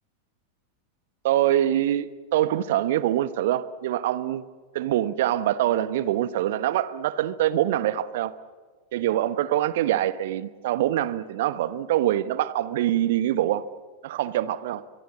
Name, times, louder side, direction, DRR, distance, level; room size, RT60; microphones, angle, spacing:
voice 1, 1.2-4.4 4.7-8.3 8.9-13.7 14.0-14.8, right 12 dB, 55° right, 16 dB, 1.1 m, -24 dB
25.0 x 23.5 x 7.4 m, 1.5 s
figure-of-eight pair, 90°, 0 cm